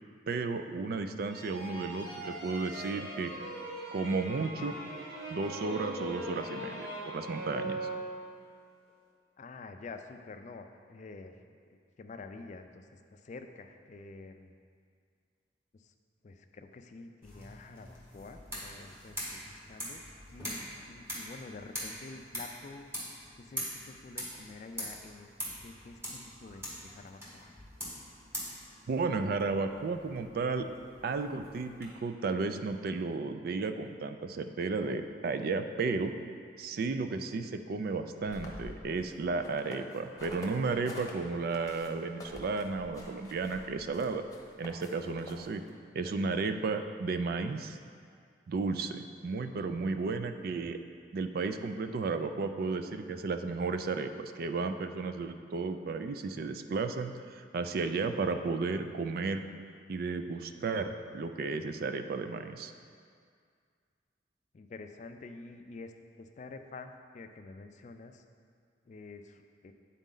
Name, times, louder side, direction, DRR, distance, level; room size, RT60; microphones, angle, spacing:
voice 1, 0.3-3.3 3.9-4.8 5.3-7.8 28.9-30.7 31.0-36.1 36.6-44.2 44.6-45.6 45.9-47.8 48.5-50.8 51.1-59.4 59.9-62.7, right 4 dB, 55° right, 9 dB, 0.3 m, -33 dB
sound 1, 1.3-8.5, right 1 dB, 85° right, 1.2 m, -40 dB
voice 2, 9.4-11.4 11.7-14.6 15.7-15.9 16.2-20.6 20.9-22.9 23.4-25.3 25.6-27.5 64.5-68.2 68.8-69.7, left 3 dB, 40° left, 7 dB, 0.3 m, -48 dB
sound 2, 17.2-31.9, equal, 15° right, 1.3 m, -44 dB
sound 3, 38.2-41.1 41.5-45.7, left 1 dB, 20° left, 0.9 m, -47 dB
9.1 x 4.1 x 3.8 m, 2.1 s
head